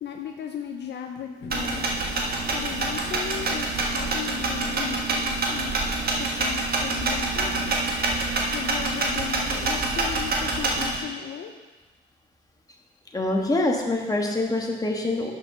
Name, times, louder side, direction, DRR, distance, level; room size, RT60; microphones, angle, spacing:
voice 1, 0.0-1.9 2.5-5.7 6.2-7.7 8.5-11.5, left 9 dB, 60° left, 3 dB, 0.6 m, -36 dB
voice 2, 1.3-1.6 9.4-10.1 13.1-15.3, left 2 dB, 20° left, 1 dB, 1.4 m, -26 dB
sound 1, 1.5-11.0, right 2 dB, 50° right, 1.5 m, -26 dB
6.9 x 5.7 x 5.9 m, 1.2 s
cardioid pair, 90°, 20 cm